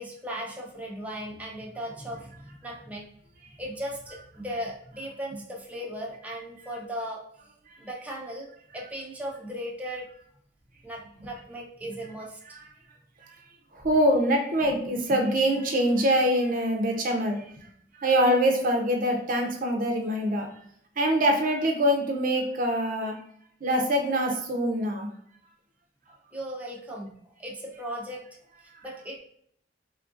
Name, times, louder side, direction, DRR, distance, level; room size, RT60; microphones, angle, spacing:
voice 1, 0.0-3.0 3.6-7.2 7.8-8.5 8.7-10.0 10.8-12.4 26.3-27.1 27.4-28.2 28.6-29.2, equal, 10° right, -3 dB, 0.6 m, -37 dB
voice 2, 13.7-17.4 18.0-20.5 21.0-23.1 23.6-25.1, equal, 50° right, 3 dB, 0.6 m, -24 dB
3.7 x 2.4 x 2.5 m, 0.66 s
head